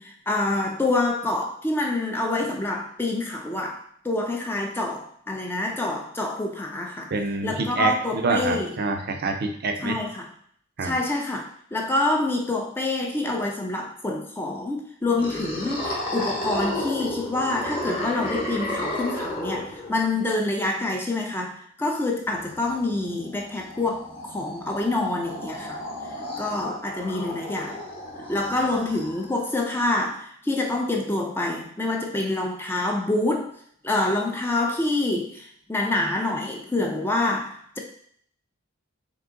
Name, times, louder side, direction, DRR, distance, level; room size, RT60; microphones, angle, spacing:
voice 1, 0.0-3.8 4.0-7.1 7.4-8.7 9.8-10.3 10.8-11.4 11.7-25.8 26.4-27.8 28.3-33.5 33.8-37.8, left 2 dB, 10° left, 1 dB, 0.4 m, -26 dB
voice 2, 7.1-10.0 10.8-11.0, right 3 dB, 50° right, 4 dB, 0.5 m, -26 dB
sound 1, 15.2-20.2 22.3-29.5, left 1 dB, 30° left, 0.9 m, -33 dB
3.7 x 2.9 x 3.7 m, 0.64 s
head